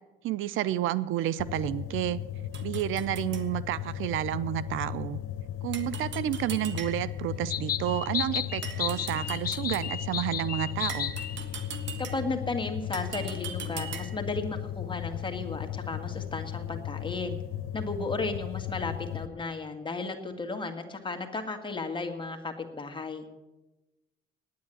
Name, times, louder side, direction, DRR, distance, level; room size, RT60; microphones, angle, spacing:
voice 1, 0.2-2.2 2.6-5.2 5.6-11.1, right 13 dB, 85° right, 18 dB, 0.6 m, -30 dB
sound 1, 1.4-19.3, left 11 dB, 85° left, 0.9 m, -36 dB
sound 2, 2.5-3.5 5.7-7.3 8.6-10.0 10.9-12.4 12.9-14.3, right 7 dB, 65° right, 1.5 m, -41 dB
sound 3, 7.5-11.4, left 9 dB, 50° left, 0.6 m, -33 dB
voice 2, 12.0-17.4 17.7-23.3, left 3 dB, 25° left, 4 dB, 2.0 m, -34 dB
9.6 x 9.6 x 9.9 m, 1.1 s
cardioid pair, 90°, 20 cm